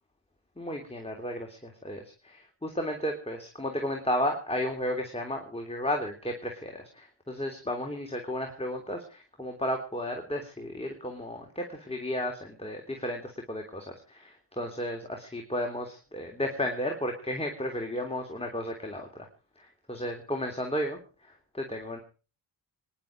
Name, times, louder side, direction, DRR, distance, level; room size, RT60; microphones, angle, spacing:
voice 1, 0.6-19.3 19.6-21.0 21.3-22.0, left 1 dB, 10° left, 2 dB, 3.2 m, -33 dB
26.0 x 11.0 x 4.6 m, 0.37 s
cardioid pair, 55°, 47 cm